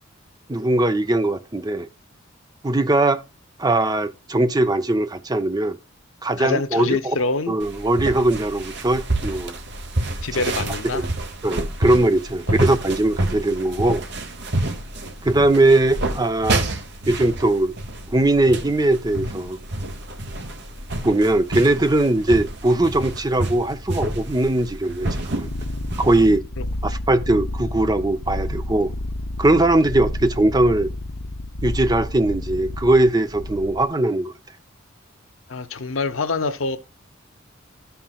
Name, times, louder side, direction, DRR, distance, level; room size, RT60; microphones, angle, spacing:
voice 1, 0.5-1.9 2.6-3.2 3.6-5.8 6.2-7.2 7.5-9.6 10.3-10.4 10.9-11.1 11.4-14.0 15.2-16.7 17.1-17.7 18.1-19.6 21.0-25.5 26.0-26.4 26.8-28.9 29.4-30.9 31.6-34.3, right 2 dB, 20° right, 0.6 m, -20 dB
voice 2, 6.4-7.6 10.2-11.0 12.5-12.6 35.5-36.8, left 3 dB, 85° left, 0.9 m, -25 dB
sound 1, 7.6-26.4, right 1 dB, 60° right, 1.1 m, -29 dB
sound 2, 25.4-33.9, left 1 dB, 50° left, 0.7 m, -30 dB
13.0 x 5.7 x 2.4 m
head